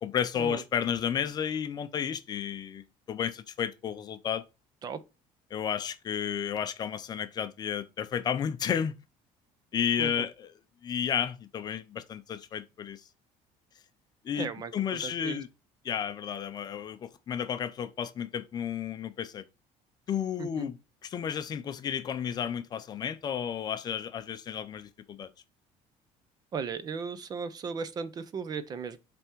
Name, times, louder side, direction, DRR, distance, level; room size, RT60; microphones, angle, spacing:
voice 1, 0.0-4.4 5.5-8.9 9.7-10.5 10.8-13.0 14.2-15.5 15.8-19.4 20.1-20.8 21.0-25.3, left 8 dB, 30° left, 0.5 m, -32 dB
voice 2, 14.4-15.4 20.4-20.7 26.5-29.0, right 5 dB, 30° right, 0.5 m, -36 dB
7.8 x 3.4 x 4.5 m
cardioid pair, 160°, 13 cm